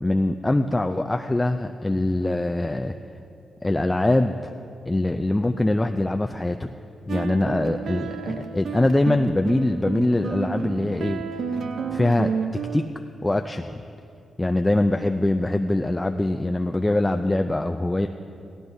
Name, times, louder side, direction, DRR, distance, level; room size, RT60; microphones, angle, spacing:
voice 1, 0.0-2.9 3.6-4.4 4.9-6.7 7.1-11.2 11.9-12.3 12.7-12.8 13.2-13.8 14.4-18.1, left 1 dB, 15° left, 5 dB, 0.4 m, -23 dB
sound 1, 7.1-12.9, right 6 dB, 70° right, 0.5 m, -31 dB
16.5 x 13.0 x 2.7 m, 2.6 s
cardioid pair, 70°, 0 cm